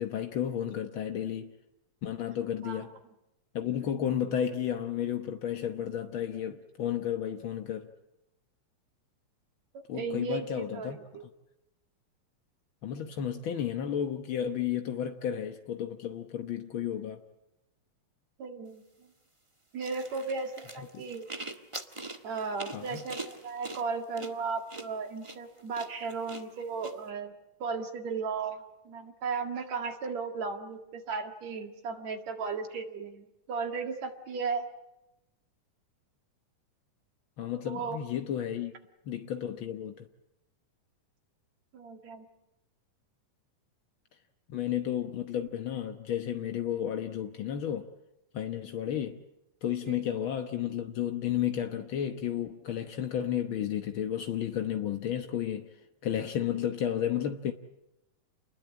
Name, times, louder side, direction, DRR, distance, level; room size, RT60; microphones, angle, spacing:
voice 1, 0.0-1.5 2.0-2.9 3.5-7.9 9.9-11.0 12.8-17.2 20.9-21.0 22.7-23.0 37.4-38.7 39.0-40.1 44.5-47.9 48.3-49.2 49.6-55.7 56.0-57.5, left 9 dB, 65° left, 1.2 m, -32 dB
voice 2, 9.7-11.3 18.4-18.8 19.7-21.3 22.2-27.3 27.6-34.6 37.7-38.0 41.7-42.3 49.8-50.0, right 5 dB, 60° right, 3.1 m, -35 dB
sound 1, 19.8-26.9, right 2 dB, 40° right, 0.4 m, -43 dB
29.0 x 21.0 x 8.6 m
omnidirectional pair, 3.8 m